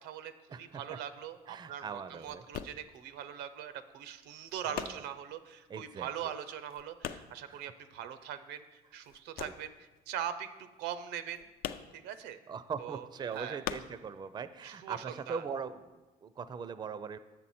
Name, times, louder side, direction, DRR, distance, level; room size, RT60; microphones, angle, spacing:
voice 1, 0.0-9.7 10.1-11.5 11.9-12.4 12.8-13.6 14.6-15.4, right 9 dB, 85° right, 12 dB, 0.5 m, -41 dB
sound 1, 0.5-8.6 8.8-14.7 15.0-16.0, left 10 dB, 65° left, 0.4 m, -44 dB
voice 2, 1.5-2.4 4.6-5.0 5.7-6.3 7.5-7.6 12.5-17.2, right 6 dB, 25° right, 13 dB, 0.4 m, -41 dB
7.6 x 6.7 x 4.2 m, 1.2 s
cardioid pair, 110°, 17 cm